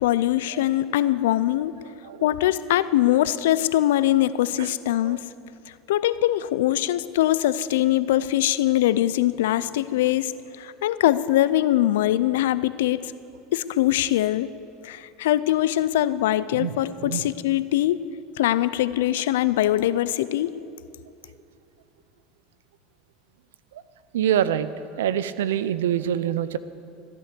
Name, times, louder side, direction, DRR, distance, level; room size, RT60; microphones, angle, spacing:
voice 1, 0.0-1.7 2.2-5.2 5.9-10.3 10.6-13.1 13.5-14.5 14.8-18.0 18.4-20.5, left 14 dB, 80° left, 16 dB, 0.5 m, -22 dB
voice 2, 24.1-24.7 25.0-26.6, right 10 dB, 85° right, 15 dB, 0.6 m, -25 dB
14.5 x 10.5 x 6.8 m, 2.5 s
supercardioid pair, 100°, 0 cm